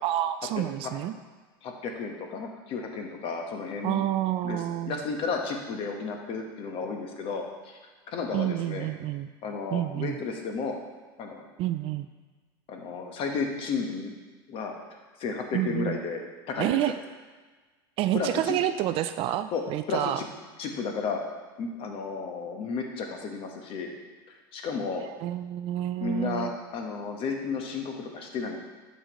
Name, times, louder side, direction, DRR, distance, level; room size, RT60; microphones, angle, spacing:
voice 1, 0.0-1.1 3.8-5.0 8.3-9.3 9.7-10.2 11.6-12.1 15.5-16.0 16.6-16.9 18.0-20.2 25.2-26.6, right 13 dB, 45° right, 10 dB, 0.3 m, -28 dB
voice 2, 1.6-4.0 4.4-7.8 8.1-8.9 9.4-10.8 11.2-11.4 12.7-14.1 14.5-16.8 18.1-18.6 19.5-19.6 19.9-20.3 20.6-21.2 21.6-23.9 24.5-25.1 26.0-28.6, left 4 dB, 45° left, 3 dB, 1.1 m, -33 dB
8.2 x 5.1 x 3.0 m, 1.3 s
supercardioid pair, 110°, 13 cm